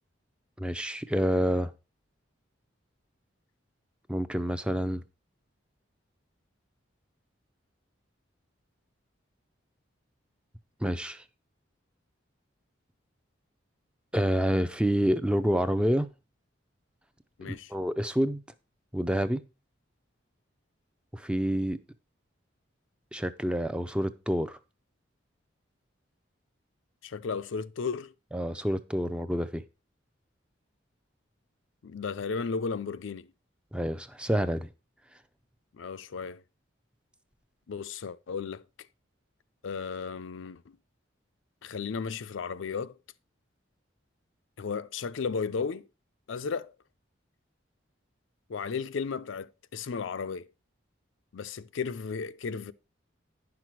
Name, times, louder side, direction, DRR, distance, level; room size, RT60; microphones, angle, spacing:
voice 1, 0.6-1.7 4.1-5.0 10.8-11.2 14.1-16.1 17.4-18.4 18.9-19.4 21.1-21.8 23.1-24.6 28.3-29.6 33.7-34.7, equal, 5° right, 0.4 m, -28 dB
voice 2, 17.4-17.7 27.0-28.1 31.8-33.3 35.7-36.4 37.7-38.6 39.6-40.8 41.6-43.0 44.6-45.9 46.3-46.7 48.5-50.5 51.3-52.7, left 5 dB, 75° left, 0.5 m, -34 dB
9.9 x 6.0 x 4.6 m
head